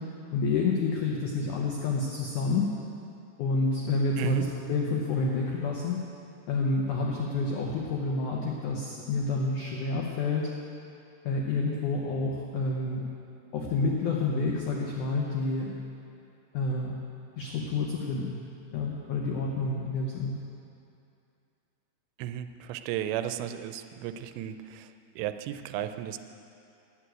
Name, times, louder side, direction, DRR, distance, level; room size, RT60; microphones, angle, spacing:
voice 1, 0.0-2.7 3.4-6.0 6.5-10.5 11.2-13.1 13.5-15.8 16.5-16.9 17.4-18.4 18.7-20.4, left 3 dB, 85° left, -2 dB, 1.7 m, -29 dB
voice 2, 22.2-26.2, right 11 dB, 90° right, 10 dB, 2.8 m, -34 dB
9.7 x 8.3 x 9.0 m, 2.6 s
omnidirectional pair, 5.0 m